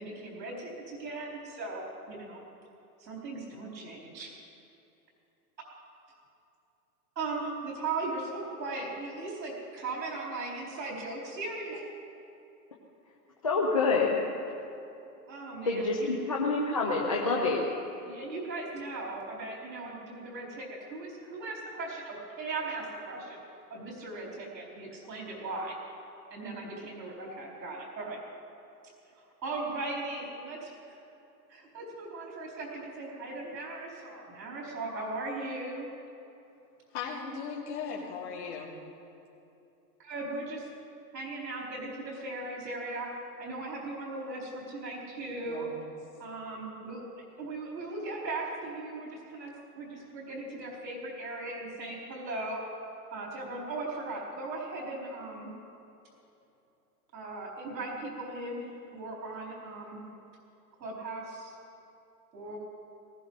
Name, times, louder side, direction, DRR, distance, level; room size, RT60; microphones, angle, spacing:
voice 1, 0.0-2.4 3.0-4.3 7.2-11.8 15.3-16.1 18.0-23.4 23.7-25.8 26.3-28.2 29.2-31.0 31.5-35.9 40.0-40.7 41.1-43.1 43.4-45.7 46.2-52.6 53.1-55.5 57.1-60.0 60.8-61.6 62.3-62.6, right 2 dB, 85° right, -3 dB, 4.4 m, -38 dB
voice 2, 13.4-14.2 15.6-17.6, left 3 dB, 20° left, -2 dB, 0.5 m, -27 dB
voice 3, 36.9-38.7 45.4-45.9, left 6 dB, 45° left, -5 dB, 2.8 m, -38 dB
19.0 x 16.0 x 4.0 m, 2.8 s
hypercardioid pair, 170°, 49 cm